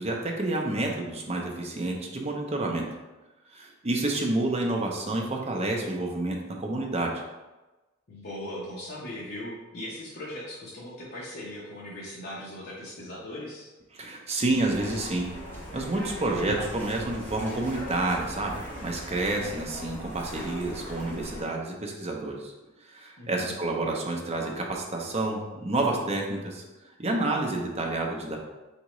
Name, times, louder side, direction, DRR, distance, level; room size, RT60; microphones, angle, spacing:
voice 1, 0.0-2.9 3.5-7.2 13.9-15.3 15.7-22.5 22.8-26.6 27.0-28.4, right 2 dB, 30° right, 0 dB, 0.6 m, -29 dB
voice 2, 8.1-13.7 23.2-23.6, left 1 dB, 50° left, -7 dB, 0.8 m, -39 dB
sound 1, 14.7-21.4, equal, 10° left, 1.0 m, -39 dB
4.1 x 3.6 x 3.0 m, 1.1 s
head